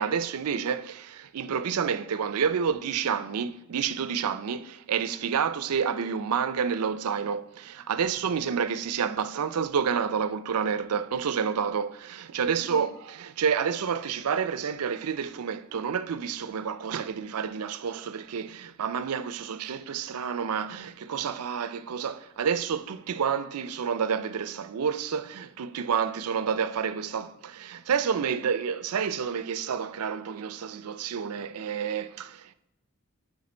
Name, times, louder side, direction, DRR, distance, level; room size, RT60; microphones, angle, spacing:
voice 1, 0.0-32.5, right 7 dB, 90° right, 0.5 m, -29 dB
9.4 x 4.4 x 4.3 m
head